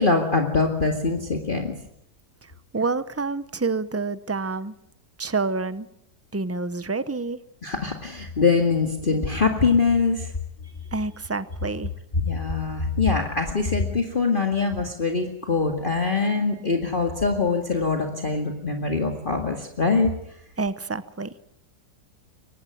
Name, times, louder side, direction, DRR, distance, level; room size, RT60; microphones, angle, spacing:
voice 1, 0.0-1.7 7.6-10.3 12.2-20.1, left 4 dB, 30° left, 3 dB, 2.2 m, -23 dB
voice 2, 2.7-4.7 5.2-5.9 6.3-7.4 10.9-11.9 20.6-21.3, right 3 dB, 15° right, 14 dB, 0.4 m, -28 dB
23.5 x 19.0 x 9.3 m, 0.75 s
omnidirectional pair, 1.8 m